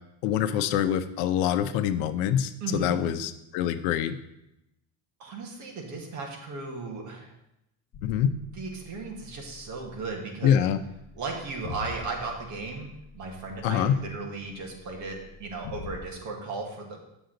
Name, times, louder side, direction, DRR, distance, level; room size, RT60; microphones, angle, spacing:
voice 1, 0.2-4.2 8.0-8.3 10.4-10.8 13.6-14.0, left 9 dB, 85° left, 10 dB, 0.8 m, -25 dB
voice 2, 2.6-3.0 5.2-7.3 8.5-10.6 11.2-12.9 13.1-17.1, right 3 dB, 40° right, 0 dB, 1.6 m, -36 dB
sound 1, 7.9-16.1, left 4 dB, 30° left, 0.7 m, -45 dB
8.1 x 6.9 x 3.9 m, 0.86 s
cardioid pair, 175°, 45 cm